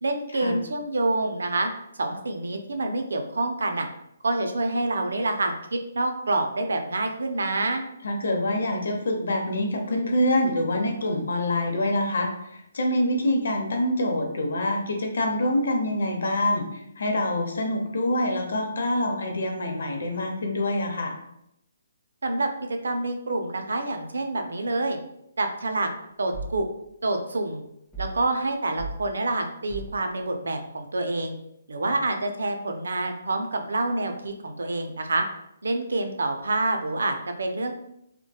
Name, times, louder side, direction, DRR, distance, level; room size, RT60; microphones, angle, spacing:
voice 1, 0.0-1.7 1.9-3.9 4.2-7.8 22.2-22.5 22.8-25.0 25.4-25.9 26.2-26.7 27.0-27.6 28.0-31.4 31.7-35.2 35.6-37.7, right 2 dB, 85° right, 5 dB, 0.4 m, -27 dB
voice 2, 8.0-21.1 31.9-32.0, left 1 dB, 75° left, 3 dB, 0.6 m, -26 dB
sound 1, 26.3-26.6 27.9-28.2 28.8-29.0 29.7-30.0, right 3 dB, 5° left, 0.5 m, -35 dB
2.7 x 2.1 x 2.3 m, 0.78 s
hypercardioid pair, 160°, 0 cm